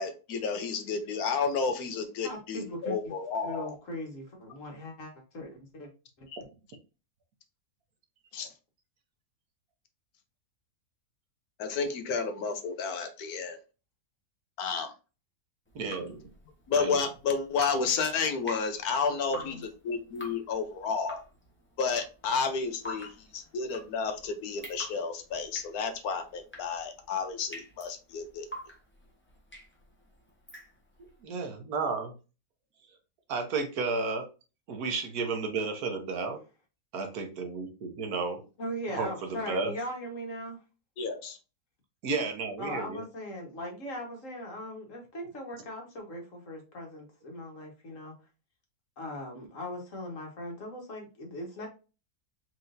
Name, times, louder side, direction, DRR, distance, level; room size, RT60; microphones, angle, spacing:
voice 1, 0.0-3.7 6.3-6.4 8.3-8.5 11.6-13.6 14.6-14.9 16.7-21.2 21.8-28.5 41.0-41.4, left 5 dB, 75° left, 7 dB, 1.2 m, -31 dB
voice 2, 2.2-3.1 3.4-5.9 6.2-6.3 19.1-19.6 38.6-40.6 42.6-48.1 49.0-51.7, equal, 55° left, 1 dB, 1.7 m, -39 dB
Drip, 15.7-31.1, equal, 10° left, 0.9 m, -47 dB
voice 3, 15.7-16.3 16.8-17.0 31.2-32.1 33.3-34.3 34.7-36.4 36.9-38.4 38.9-39.7 42.0-43.0, right 4 dB, 70° right, 4 dB, 1.4 m, -32 dB
4.4 x 3.8 x 2.6 m, 0.32 s
omnidirectional pair, 1.7 m